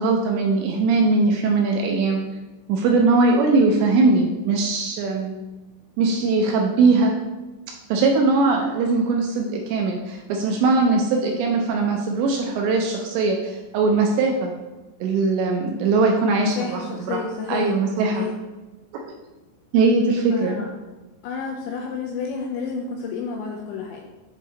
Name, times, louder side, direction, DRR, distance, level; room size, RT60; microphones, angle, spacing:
voice 1, 0.0-2.2 2.7-5.4 6.0-7.1 7.9-14.5 15.0-17.2 17.5-18.3 19.7-20.6, right 3 dB, 80° right, 1 dB, 2.6 m, -20 dB
voice 2, 16.4-17.7 18.0-18.3 20.3-20.7 21.2-24.0, left 5 dB, 85° left, 0 dB, 2.5 m, -30 dB
7.3 x 3.8 x 3.9 m, 1.1 s
omnidirectional pair, 5.5 m